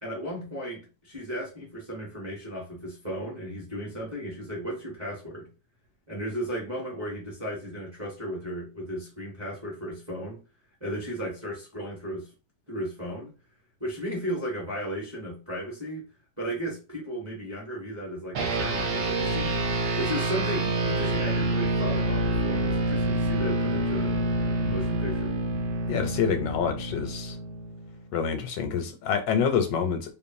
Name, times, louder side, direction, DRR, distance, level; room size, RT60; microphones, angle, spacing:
voice 1, 0.0-5.5 6.1-10.4 10.8-12.3 12.7-13.3 13.8-16.1 16.4-19.6 20.0-25.3, equal, 25° right, 0.6 m, -35 dB
sound 1, 18.3-28.1, right 1 dB, 65° right, 1.0 m, -27 dB
voice 2, 25.9-27.4 28.1-30.1, left 7 dB, 85° left, 1.2 m, -27 dB
3.0 x 2.1 x 2.5 m
omnidirectional pair, 1.9 m